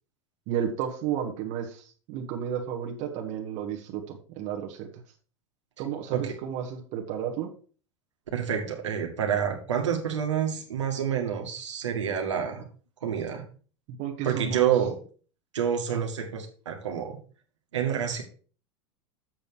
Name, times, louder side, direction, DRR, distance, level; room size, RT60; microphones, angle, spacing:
voice 1, 0.5-4.9 5.8-7.5 13.9-14.7 15.9-16.0, right 8 dB, 50° right, 2 dB, 1.6 m, -32 dB
voice 2, 8.3-12.7 13.0-13.4 14.2-15.0 15.5-17.2 17.7-18.2, right 8 dB, 80° right, 2 dB, 2.0 m, -28 dB
7.5 x 6.9 x 4.6 m, 0.40 s
hypercardioid pair, 90°, 15 cm